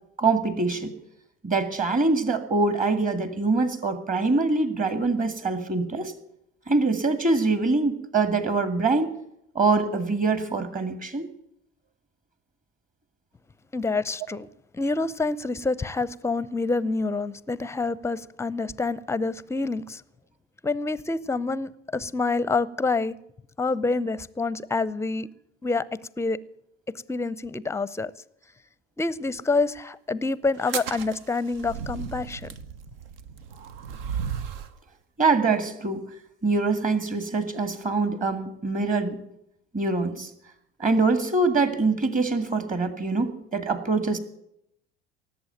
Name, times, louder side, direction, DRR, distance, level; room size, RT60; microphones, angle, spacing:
voice 1, 0.2-0.9 1.4-6.1 6.7-9.1 9.6-11.3 35.2-36.0 36.4-39.2 39.7-40.3 40.8-44.2, right 3 dB, 25° right, 2.1 m, -24 dB
voice 2, 13.7-14.5 14.7-20.0 20.6-23.2 23.6-25.3 25.6-25.9 26.2-26.4 27.1-28.1 29.0-32.5, left 3 dB, 10° left, 0.6 m, -27 dB
sound 1, 30.6-34.8, right 7 dB, 70° right, 1.0 m, -35 dB
18.0 x 8.0 x 9.1 m
figure-of-eight pair, 70°, 31 cm